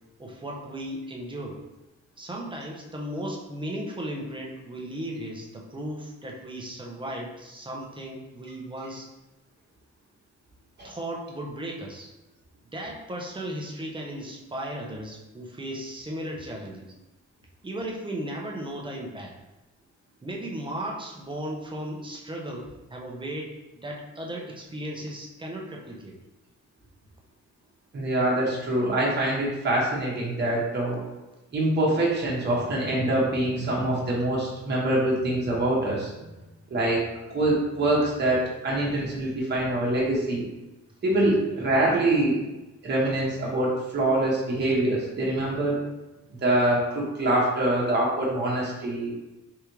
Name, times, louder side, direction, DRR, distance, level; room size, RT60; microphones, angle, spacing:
voice 1, 0.2-1.6 2.2-9.1 10.8-12.1 12.7-16.9 17.6-19.3 20.2-26.2, right 1 dB, 15° right, -1 dB, 0.7 m, -36 dB
voice 2, 27.9-31.0 31.5-36.1 36.7-40.5 41.0-42.4 42.8-45.8 46.4-49.2, right 1 dB, 35° right, -5 dB, 1.1 m, -24 dB
3.6 x 3.2 x 3.0 m, 1.0 s
cardioid pair, 115°, 29 cm